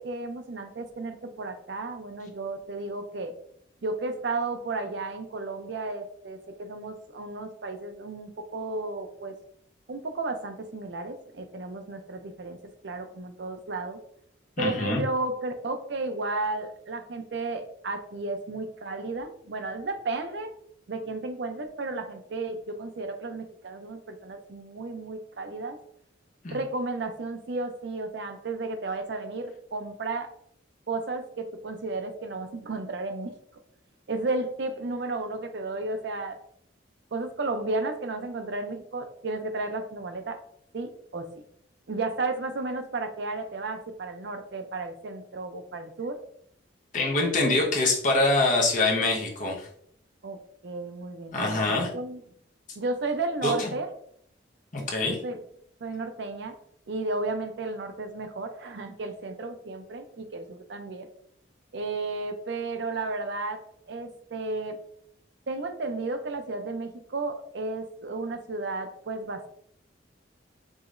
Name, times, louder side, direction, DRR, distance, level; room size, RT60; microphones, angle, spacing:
voice 1, 0.0-3.3 3.8-9.4 9.9-12.6 12.8-14.0 14.6-20.5 20.9-25.8 26.5-30.3 30.9-33.4 34.1-36.4 37.1-40.4 40.7-41.3 41.9-46.2 50.2-52.2 52.8-53.9 55.2-55.4 55.8-56.5 56.9-61.1 61.7-63.6 63.9-64.8 65.5-69.5, right 3 dB, 60° right, 7 dB, 0.5 m, -33 dB
voice 2, 14.6-15.0 26.4-26.6 46.9-49.7 51.3-51.9 53.4-53.7 54.7-55.2, left 2 dB, 40° left, -1 dB, 0.9 m, -24 dB
4.9 x 2.9 x 2.5 m, 0.66 s
head